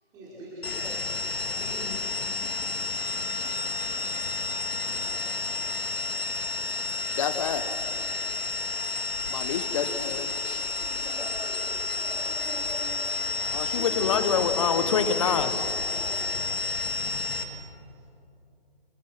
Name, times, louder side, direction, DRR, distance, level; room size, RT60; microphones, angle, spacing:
voice 1, 0.1-2.7 3.6-7.1 7.4-8.6 9.9-10.0 10.7-12.0 12.2-12.5 13.3-16.2, equal, 15° right, -9 dB, 5.2 m, -46 dB
sound 1, 0.6-17.4, left 3 dB, 80° left, 3.0 m, -31 dB
voice 2, 7.1-7.6 9.3-10.6 13.5-15.5, left 7 dB, 30° left, 10 dB, 1.5 m, -27 dB
voice 3, 12.0-13.1 16.0-16.5 17.2-17.3 17.9-18.0, right 2 dB, 50° right, -6 dB, 6.6 m, -43 dB
28.5 x 20.5 x 6.1 m, 2.6 s
hypercardioid pair, 160°, 30 cm